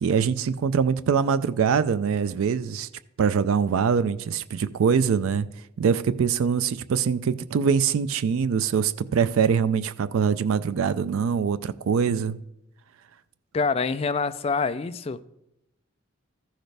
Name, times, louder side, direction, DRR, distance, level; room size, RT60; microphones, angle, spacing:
voice 1, 0.0-2.9 3.2-5.5 5.8-12.4, right 6 dB, 85° right, 0.4 m, -23 dB
voice 2, 13.5-15.2, left 4 dB, 30° left, 0.3 m, -26 dB
14.0 x 6.4 x 3.3 m
head